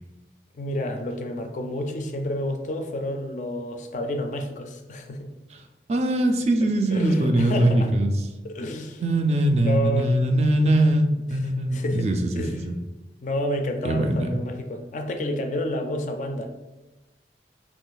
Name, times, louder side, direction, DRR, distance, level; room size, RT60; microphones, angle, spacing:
voice 1, 0.5-5.3 6.9-8.0 8.4-9.0 9.5-10.1 11.7-12.1 12.4-12.6 13.2-16.5, left 1 dB, 45° left, 5 dB, 0.3 m, -30 dB
voice 2, 5.9-8.1 9.0-12.7 13.8-14.4, right 1 dB, 35° right, 5 dB, 0.3 m, -22 dB
3.0 x 2.4 x 3.8 m, 1.1 s
head